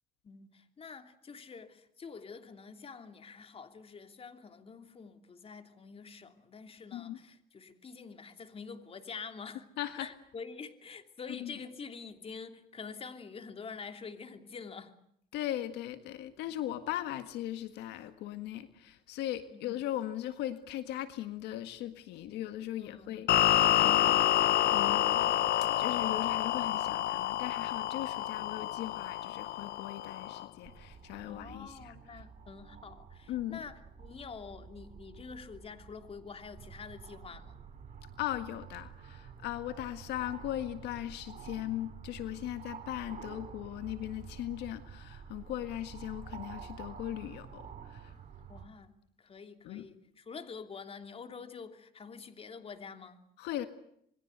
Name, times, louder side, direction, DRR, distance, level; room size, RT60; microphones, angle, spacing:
voice 1, 0.2-9.7 10.0-14.9 19.5-19.7 22.8-23.1 31.3-37.6 48.5-53.2, left 5 dB, 35° left, 3.0 m, -47 dB
voice 2, 9.8-10.1 11.3-11.5 15.3-24.2 24.7-32.2 33.3-33.6 38.2-48.2 49.6-49.9 53.4-53.7, left 13 dB, 85° left, 1.8 m, -39 dB
sound 1, 23.3-30.5, left 13 dB, 70° left, 1.2 m, -28 dB
sound 2, 30.6-48.7, right 6 dB, 45° right, 4.7 m, -49 dB
27.0 x 21.5 x 8.1 m
cardioid pair, 110°, 17 cm